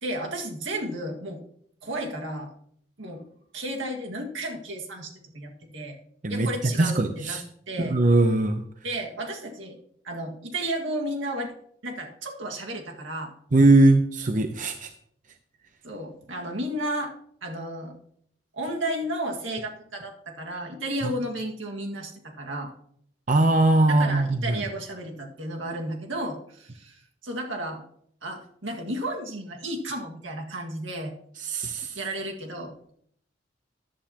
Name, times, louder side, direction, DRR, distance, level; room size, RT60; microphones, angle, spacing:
voice 1, 0.0-1.4 1.8-2.5 3.0-3.2 3.5-6.0 6.3-7.4 7.7-8.0 8.8-9.8 10.0-11.5 11.8-13.3 15.8-17.1 17.4-18.0 18.5-22.7 23.9-27.8 28.2-31.1 32.0-32.9, right 1 dB, 80° right, 1 dB, 1.9 m, -33 dB
voice 2, 6.8-7.4 7.8-8.6 13.5-14.9 21.0-21.1 23.3-24.6 31.4-32.0, right 2 dB, 40° right, 7 dB, 0.7 m, -20 dB
14.5 x 11.0 x 2.9 m, 0.66 s
head